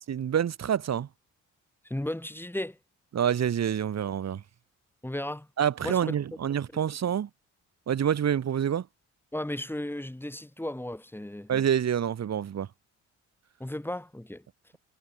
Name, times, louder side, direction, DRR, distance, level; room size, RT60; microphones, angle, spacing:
voice 1, 0.1-1.1 3.1-4.4 5.6-7.3 7.9-8.8 11.5-12.7, right 9 dB, 60° right, 7.9 m, -27 dB
voice 2, 1.8-2.8 5.0-5.5 5.8-6.2 9.3-11.5 13.6-14.4, left 1 dB, 5° left, 7.4 m, -35 dB
cardioid pair, 90°, 30 cm